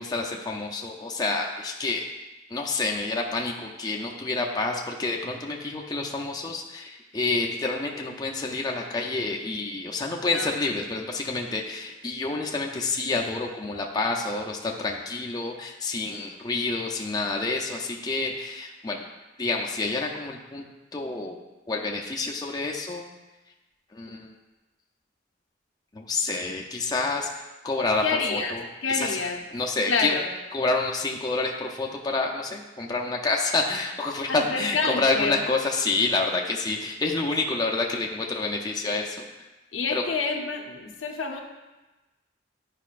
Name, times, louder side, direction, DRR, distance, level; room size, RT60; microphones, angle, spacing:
voice 1, 0.0-2.1 2.5-19.0 19.4-20.7 20.9-21.4 21.7-23.1 23.9-24.3 25.9-29.2 29.5-30.1 30.5-39.2 39.9-40.0, left 3 dB, 20° left, 0 dB, 0.5 m, -28 dB
voice 2, 28.0-28.6 28.8-29.4 29.9-30.3 34.3-35.4 39.7-41.4, left 4 dB, 85° left, 2 dB, 0.8 m, -28 dB
10.5 x 4.9 x 2.5 m, 1.1 s
head